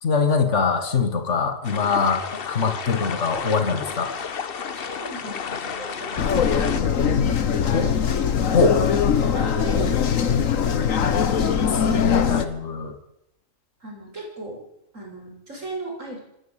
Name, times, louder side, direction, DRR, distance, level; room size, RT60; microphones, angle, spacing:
voice 1, 0.0-4.1 7.7-7.9 8.5-8.8 11.4-13.0, left 5 dB, 65° left, 7 dB, 2.2 m, -23 dB
sound 1, 1.6-6.8, left 6 dB, 50° left, 1.1 m, -32 dB
voice 2, 4.4-8.0 8.6-8.9 9.3-9.9 10.2-12.3 13.8-14.6 14.9-16.2, right 2 dB, 75° right, 0 dB, 7.3 m, -37 dB
sound 2, 6.2-12.4, left 7 dB, 90° left, 1.6 m, -21 dB
26.0 x 11.0 x 9.2 m, 0.82 s
omnidirectional pair, 1.3 m